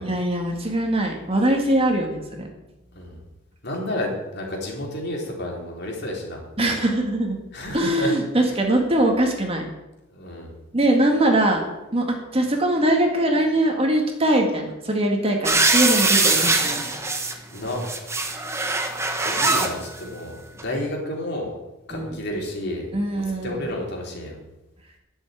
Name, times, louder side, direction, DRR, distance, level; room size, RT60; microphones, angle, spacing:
voice 1, 0.0-2.5 6.6-7.4 7.7-9.7 10.7-11.6 11.9-16.8 21.9-22.2 22.9-23.7, right 1 dB, 30° right, 2 dB, 2.1 m, -22 dB
voice 2, 3.6-6.4 7.5-8.1 10.1-10.5 17.5-17.8 19.2-21.5 21.9-22.9 23.1-24.4, left 1 dB, 55° left, -1 dB, 4.1 m, -31 dB
sound 1, 15.4-17.3 17.7-19.7 20.6-20.7, right 3 dB, 15° right, 1.3 m, -22 dB
11.5 x 7.4 x 9.2 m, 0.99 s
head